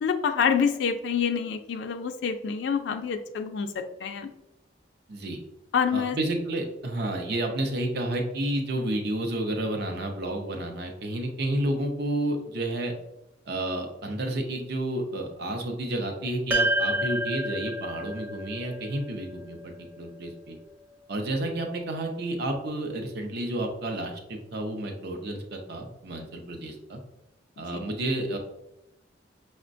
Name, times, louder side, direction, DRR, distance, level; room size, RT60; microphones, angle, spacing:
voice 1, 0.0-3.7 4.0-4.3 5.7-6.2 27.7-27.8, left 6 dB, 65° left, 6 dB, 0.3 m, -27 dB
voice 2, 5.1-5.4 5.9-12.9 13.5-20.6 21.1-27.0 27.6-28.4, right 1 dB, 60° right, 4 dB, 0.6 m, -31 dB
sound 1, 16.5-21.0, right 1 dB, 10° right, 0.6 m, -30 dB
6.0 x 2.1 x 2.5 m, 0.90 s
head